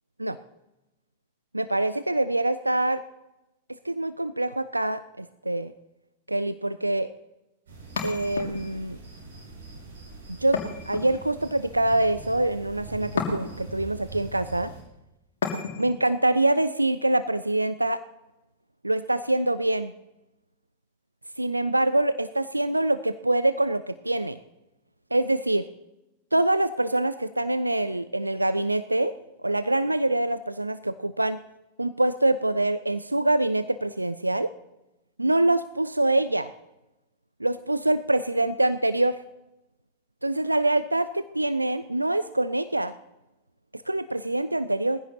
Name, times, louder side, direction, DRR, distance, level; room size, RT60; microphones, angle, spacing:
voice 1, 1.5-3.0 3.8-5.7 6.3-7.1 8.0-9.0 10.3-10.6 10.9-14.7 15.8-18.0 18.8-19.9 21.4-24.4 25.1-25.7 26.3-29.1 29.4-31.4 31.8-34.5 35.2-36.5 37.4-39.2 40.2-42.9 43.7-45.0, right 1 dB, 85° right, 15 dB, 0.4 m, -25 dB
sound 1, 7.7-14.8, right 3 dB, 65° right, 6.0 m, -43 dB
sound 2, 8.0-8.9 10.5-11.5 13.2-13.8 15.4-16.0, left 5 dB, 65° left, 2.2 m, -32 dB
20.5 x 15.0 x 2.8 m, 0.95 s
figure-of-eight pair, 90°, 0 cm